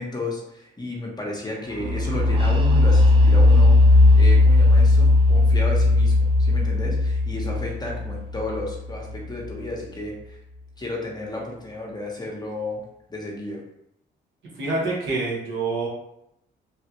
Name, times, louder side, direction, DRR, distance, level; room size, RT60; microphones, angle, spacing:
voice 1, 0.0-10.4 10.8-12.8 13.1-13.6, left 2 dB, 20° left, -1 dB, 0.8 m, -33 dB
sound 1, 1.8-9.5, left 2 dB, 25° right, 0.5 m, -17 dB
voice 2, 14.6-15.9, right 3 dB, 75° right, -4 dB, 1.4 m, -26 dB
3.2 x 2.4 x 2.9 m, 0.78 s
cardioid pair, 90°, 20 cm